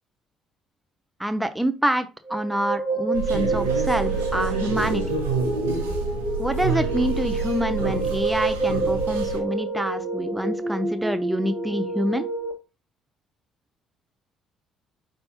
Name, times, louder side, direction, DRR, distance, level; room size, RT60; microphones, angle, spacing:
voice 1, 1.2-5.0 6.4-12.3, equal, 5° right, 9 dB, 0.5 m, -26 dB
sound 1, 2.3-12.5, right 3 dB, 20° left, 1.8 m, -28 dB
sound 2, 3.1-9.4, right 4 dB, 90° right, 0.8 m, -28 dB
5.4 x 3.5 x 2.8 m, 0.30 s
hypercardioid pair, 55°, 0 cm